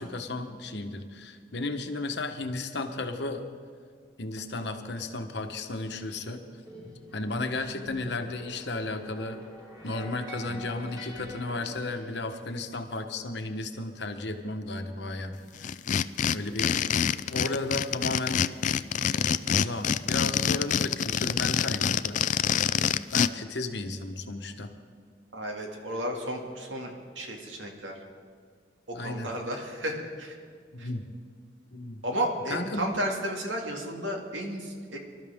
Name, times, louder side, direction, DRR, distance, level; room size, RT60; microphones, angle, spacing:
voice 1, 0.0-3.4 4.2-6.4 7.1-9.4 9.8-15.7 16.3-16.7 17.3-18.4 19.1-22.5 23.1-24.7 28.9-29.3 30.7-31.0 31.7-32.0 32.5-32.9, left 2 dB, 65° left, 6 dB, 1.1 m, -34 dB
sound 1, 6.7-12.2, left 1 dB, 20° right, 4.1 m, -45 dB
sound 2, 15.6-23.3, left 8 dB, 40° left, 0.3 m, -26 dB
voice 2, 25.3-28.0 28.9-30.4 30.8-30.9 32.0-35.0, right 1 dB, 85° right, 1 dB, 2.3 m, -33 dB
25.0 x 12.5 x 3.6 m, 2.1 s
head